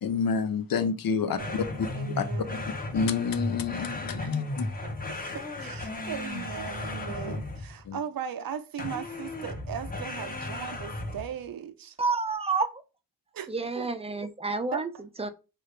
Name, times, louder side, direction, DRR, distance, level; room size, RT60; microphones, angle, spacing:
voice 1, 0.0-2.2 2.5-2.6 2.9-4.7 7.9-8.0, left 6 dB, 75° left, 0.5 m, -29 dB
voice 2, 1.1-2.7 4.1-12.0 13.3-13.5 13.7-13.9 14.7-15.0, right 8 dB, 80° right, 0.5 m, -39 dB
sound 1, 1.4-7.8 8.8-11.4, left 2 dB, 25° left, 0.8 m, -35 dB
voice 3, 12.0-12.7 13.5-14.9 15.2-15.3, right 4 dB, 20° right, 0.3 m, -29 dB
3.2 x 2.4 x 3.2 m
wide cardioid pair, 95°, 35 cm